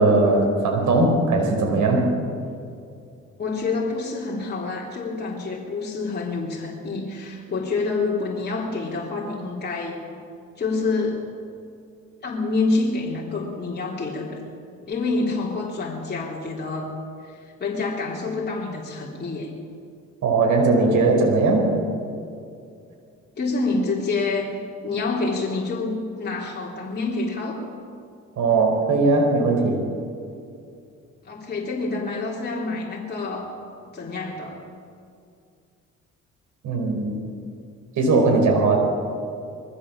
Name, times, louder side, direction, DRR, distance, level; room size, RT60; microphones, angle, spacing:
voice 1, 0.0-2.1 20.2-21.7 28.4-29.8 36.6-37.2 38.0-38.8, right 3 dB, 75° right, 1 dB, 5.0 m, -19 dB
voice 2, 3.4-10.0 10.6-11.3 12.2-14.4 14.8-16.9 17.2-19.5 23.4-24.5 24.8-27.6 31.2-33.5 33.9-34.6, left 3 dB, 35° left, -4 dB, 3.6 m, -27 dB
22.0 x 15.5 x 7.5 m, 2.4 s
cardioid pair, 90°, 30 cm